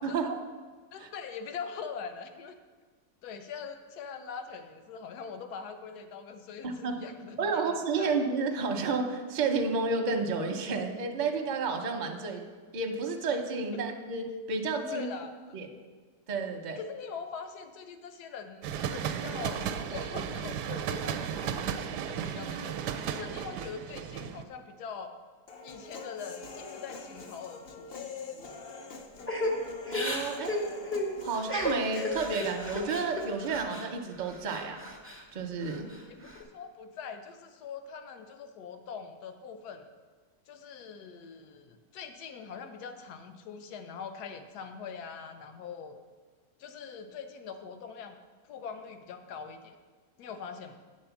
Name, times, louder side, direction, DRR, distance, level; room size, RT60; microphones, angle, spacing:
voice 1, 0.0-0.3 1.0-1.1 6.6-7.0 7.4-12.4 12.7-15.1 15.5-15.7 16.3-16.8 29.9-30.6 31.2-34.9 35.3-35.9, right 4 dB, 45° right, 3 dB, 0.6 m, -31 dB
voice 2, 0.9-2.6 3.2-8.2 14.9-15.6 16.8-21.8 22.0-22.8 23.0-25.1 25.6-27.9 36.1-39.9 40.5-46.0 46.6-48.2 48.4-49.8 50.2-50.8, left 6 dB, 75° left, 8 dB, 1.2 m, -42 dB
sound 1, 18.6-24.4, right 8 dB, 85° right, 1.2 m, -34 dB
Human voice, 25.5-33.5, left 4 dB, 50° left, 0.7 m, -44 dB
Crying sobbing / Breathing, 29.3-33.9 34.2-35.2 35.6-36.4, left 1 dB, 20° left, 0.3 m, -34 dB
8.8 x 4.2 x 7.0 m, 1.4 s
omnidirectional pair, 1.8 m